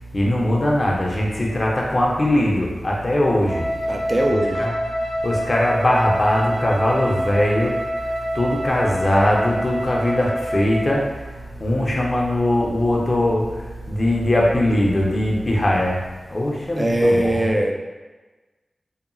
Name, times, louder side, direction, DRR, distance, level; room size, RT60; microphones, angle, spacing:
voice 1, 0.1-17.5, left 1 dB, 40° left, -2 dB, 0.5 m, -21 dB
Wind instrument woodwind instrument, 3.4-11.1, equal, 50° right, 1.0 m, -27 dB
voice 2, 3.9-4.7 16.7-17.7, right 1 dB, 25° right, 1 dB, 0.3 m, -20 dB
2.8 x 2.3 x 2.5 m, 1.2 s
wide cardioid pair, 60°, 0 cm